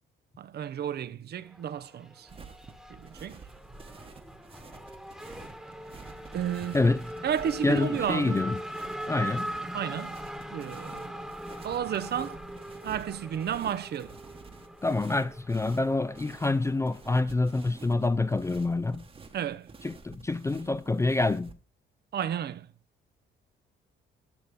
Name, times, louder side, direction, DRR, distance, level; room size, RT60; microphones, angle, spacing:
voice 1, 0.4-2.3 2.9-3.4 6.3-6.9 7.2-8.4 9.7-10.2 10.5-11.2 11.6-12.4 12.8-14.2 19.3-19.7 22.1-22.7, right 9 dB, 55° right, 0.6 m, -32 dB
Race car auto racing / Accelerating revving vroom, 1.3-18.3, right 1 dB, ahead, 1.2 m, -41 dB
sound 1, 2.3-21.5, right 4 dB, 30° right, 1.1 m, -50 dB
voice 2, 6.7-7.1 7.6-8.6 9.1-9.5 14.8-19.1 19.8-21.6, left 3 dB, 15° left, 0.3 m, -27 dB
10.5 x 6.7 x 3.5 m
cardioid pair, 90°, 20 cm